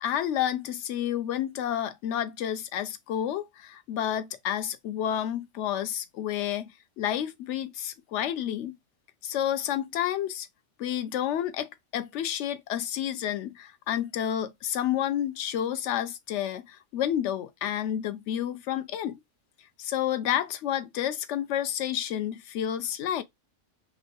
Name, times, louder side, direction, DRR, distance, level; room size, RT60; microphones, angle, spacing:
voice 1, 0.0-8.8 9.2-10.5 10.8-19.2 19.8-23.2, left 10 dB, 70° left, 0.9 m, -30 dB
3.2 x 3.1 x 2.5 m
omnidirectional pair, 1.4 m